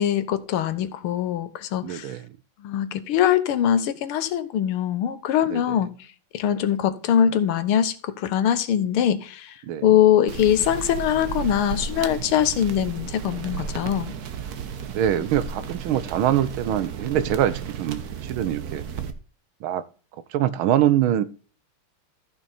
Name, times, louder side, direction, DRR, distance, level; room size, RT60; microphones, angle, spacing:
voice 1, 0.0-2.1 2.6-5.9 6.3-14.1, left 10 dB, 85° left, 1.8 m, -22 dB
voice 2, 1.8-2.2 5.5-5.8 9.7-9.9 14.9-18.8 19.6-19.8 20.3-21.2, right 11 dB, 75° right, 1.5 m, -24 dB
sound 1, 10.3-19.1, right 7 dB, 55° right, 1.3 m, -33 dB
14.0 x 5.9 x 4.2 m
omnidirectional pair, 2.3 m